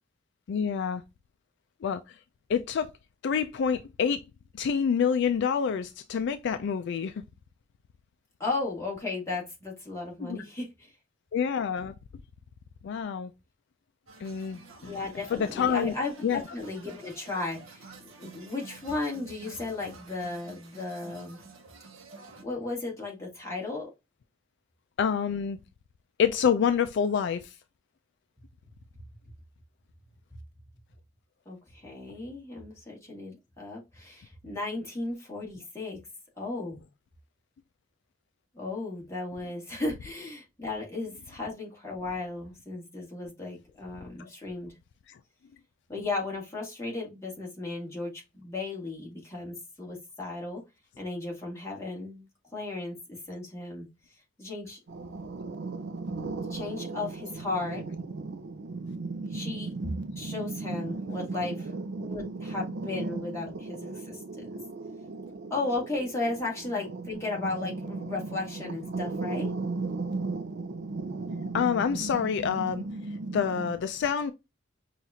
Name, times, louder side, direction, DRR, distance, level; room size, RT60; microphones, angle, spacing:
voice 1, 0.5-1.0 1.8-2.2 2.5-2.9 3.2-4.2 4.5-7.1 10.2-10.4 11.3-11.9 12.8-13.3 14.2-15.0 15.3-15.9 16.2-16.4 25.0-25.6 26.2-27.6 44.2-44.3 45.1-45.2 56.2-56.3 60.2-60.3 71.5-72.8 73.3-74.3, left 7 dB, 60° left, 0.3 m, -27 dB
voice 2, 8.4-10.9 14.8-17.9 18.2-21.4 22.4-23.9 31.5-36.0 36.4-36.8 38.5-44.8 45.9-50.6 51.0-52.3 52.5-53.9 54.4-54.8 56.5-57.8 59.3-59.7 60.1-61.7 62.0-64.6 65.5-69.5, left 3 dB, 15° left, 1.8 m, -35 dB
sound 1, 14.1-22.4, right 3 dB, 85° right, 0.8 m, -50 dB
sound 2, 54.9-73.7, right 3 dB, 60° right, 0.4 m, -36 dB
5.7 x 2.4 x 2.7 m
head